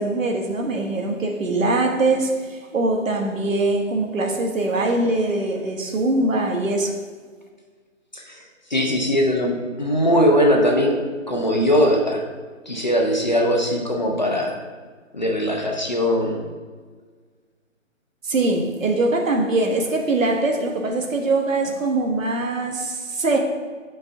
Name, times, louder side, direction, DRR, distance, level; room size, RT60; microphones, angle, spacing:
voice 1, 0.0-7.0 18.2-23.4, right 2 dB, 75° right, 2 dB, 1.1 m, -22 dB
voice 2, 8.7-11.0 11.3-12.2 12.7-14.5 15.1-16.4, equal, 35° left, 1 dB, 0.5 m, -20 dB
6.6 x 5.3 x 2.7 m, 1.5 s
figure-of-eight pair, 165°, 40 cm